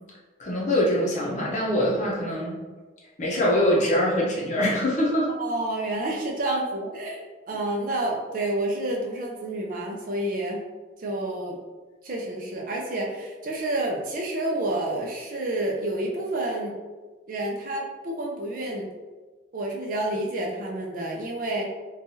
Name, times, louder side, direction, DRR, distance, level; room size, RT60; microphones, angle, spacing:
voice 1, 0.4-2.6 3.2-5.3 6.5-6.6, left 1 dB, 40° left, -4 dB, 0.6 m, -23 dB
voice 2, 5.4-10.7 11.0-11.6 12.0-16.8 17.3-18.9 19.5-21.7, right 1 dB, 45° right, -1 dB, 0.5 m, -29 dB
3.2 x 2.3 x 2.6 m, 1.3 s
head